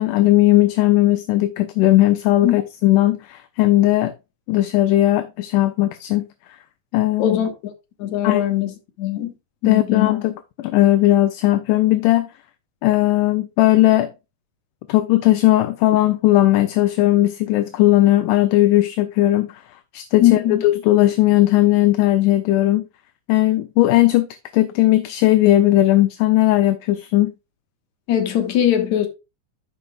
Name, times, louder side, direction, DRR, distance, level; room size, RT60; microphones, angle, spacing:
voice 1, 0.0-4.1 4.5-6.3 6.9-7.4 8.2-8.4 9.7-12.3 12.8-14.1 14.9-19.5 19.9-22.9 23.3-24.3 24.5-27.3, left 15 dB, 80° left, 2.1 m, -17 dB
voice 2, 7.2-7.5 8.0-9.3 9.6-10.1 20.2-20.6 28.1-29.1, left 11 dB, 65° left, 2.6 m, -20 dB
13.5 x 5.4 x 2.3 m
omnidirectional pair, 3.7 m